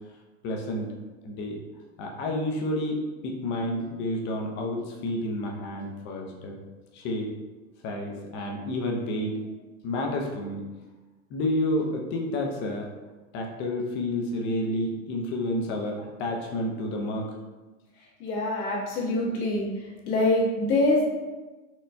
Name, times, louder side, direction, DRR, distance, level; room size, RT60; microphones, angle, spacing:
voice 1, 0.4-0.9 1.2-1.6 2.0-3.0 3.2-6.6 6.9-7.3 7.8-9.3 9.8-10.6 11.3-12.9 13.3-17.3, left 1 dB, 25° left, 1 dB, 0.5 m, -30 dB
voice 2, 18.2-19.7 20.1-21.0, left 2 dB, 85° left, -6 dB, 1.4 m, -24 dB
4.3 x 2.2 x 2.6 m, 1.2 s
supercardioid pair, 130°, 43 cm